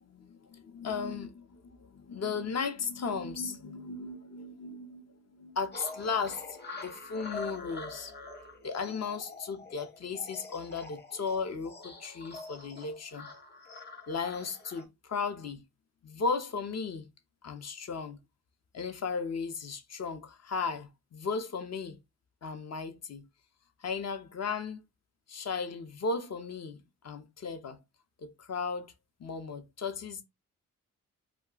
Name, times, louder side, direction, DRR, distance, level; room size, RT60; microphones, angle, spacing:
voice 1, 0.0-8.1 8.6-13.3 14.1-15.6 16.0-17.1 17.4-18.2 18.7-22.0 22.4-23.3 23.8-24.9 25.3-27.8 28.2-28.9 29.2-30.2, left 5 dB, 50° left, 0.7 m, -36 dB
sound 1, 5.7-14.8, left 3 dB, 30° left, 0.9 m, -45 dB
2.3 x 2.2 x 3.7 m
cardioid pair, 70°, 33 cm